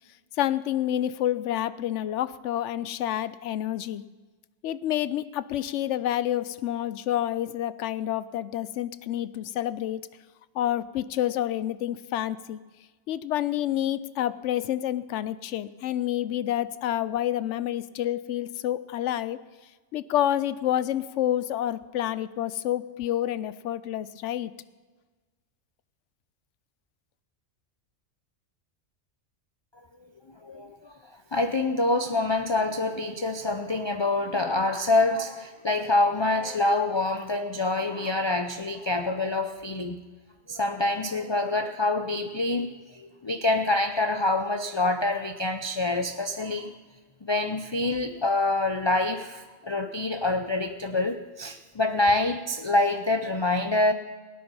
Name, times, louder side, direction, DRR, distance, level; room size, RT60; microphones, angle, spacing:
voice 1, 0.4-4.1 4.6-10.0 10.5-12.6 13.1-19.4 19.9-24.5, left 12 dB, 75° left, 16 dB, 0.9 m, -28 dB
voice 2, 30.4-30.9 31.3-40.0 40.5-46.7 47.2-53.9, left 2 dB, 35° left, 7 dB, 0.4 m, -26 dB
17.5 x 9.5 x 5.5 m, 1.4 s
omnidirectional pair, 1.3 m